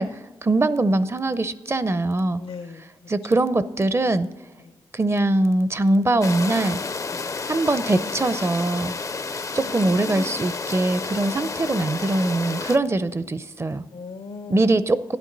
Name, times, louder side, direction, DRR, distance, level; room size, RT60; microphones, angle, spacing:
voice 1, 0.0-2.4 3.1-4.3 4.9-6.8 7.5-8.9 9.5-13.8 14.5-15.2, right 2 dB, 30° right, 0.5 m, -22 dB
voice 2, 2.4-2.9 4.6-4.8 7.1-7.3 9.6-10.4 13.9-14.6, left 4 dB, 75° left, 0.7 m, -38 dB
sound 1, 6.2-12.8, left 4 dB, 35° left, 0.4 m, -31 dB
12.5 x 10.5 x 3.9 m
cardioid pair, 65°, 9 cm